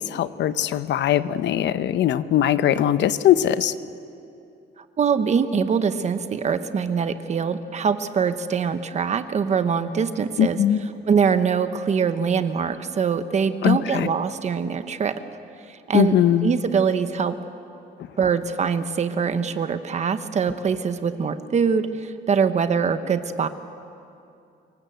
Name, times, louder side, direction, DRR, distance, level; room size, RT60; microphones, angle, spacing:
voice 1, 0.0-3.7 10.4-10.8 13.6-14.1 15.9-16.5, left 11 dB, 75° left, 13 dB, 0.8 m, -20 dB
voice 2, 4.8-10.8 11.1-15.2 15.7-17.4 18.2-23.5, right 6 dB, 35° right, 10 dB, 1.0 m, -23 dB
26.0 x 23.0 x 7.9 m, 2.7 s
cardioid pair, 160°, 19 cm